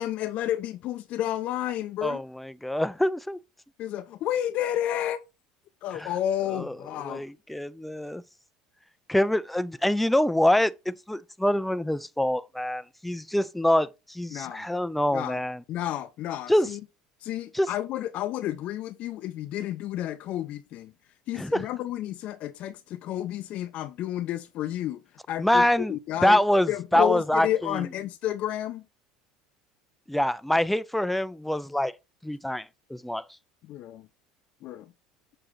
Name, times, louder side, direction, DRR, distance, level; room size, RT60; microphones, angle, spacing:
voice 1, 0.0-2.2 3.8-5.2 5.8-7.2 14.3-14.6 15.1-15.4 15.7-16.8 17.2-20.9 21.3-25.0 25.3-26.4 26.7-28.8 33.7-34.1 34.6-34.9, left 12 dB, 55° left, 0.5 m, -31 dB
voice 2, 2.0-3.4 5.9-6.1 6.5-6.7 7.0-8.2 9.1-15.6 16.5-16.7 17.5-17.7 21.4-21.7 25.4-26.0 26.2-27.8 30.1-31.9 32.2-32.7 32.9-33.2, left 1 dB, 5° left, 0.4 m, -25 dB
6.7 x 4.3 x 3.9 m
hypercardioid pair, 75°, 3 cm